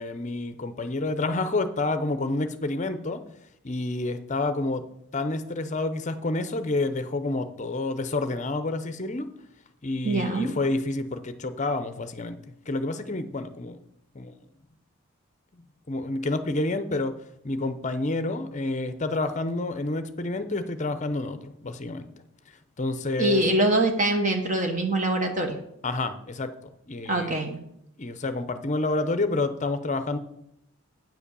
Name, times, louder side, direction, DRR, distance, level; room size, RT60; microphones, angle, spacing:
voice 1, 0.0-3.2 3.6-4.8 5.1-9.3 9.8-12.4 12.7-13.8 14.1-14.3 15.9-17.1 17.4-22.1 22.8-23.4 25.8-26.5 26.9-27.3 28.0-30.2, left 2 dB, 35° left, 10 dB, 0.6 m, -29 dB
voice 2, 10.0-10.6 23.2-25.6 27.0-27.6, right 1 dB, 35° right, 4 dB, 1.1 m, -24 dB
9.3 x 5.0 x 6.8 m, 0.77 s
head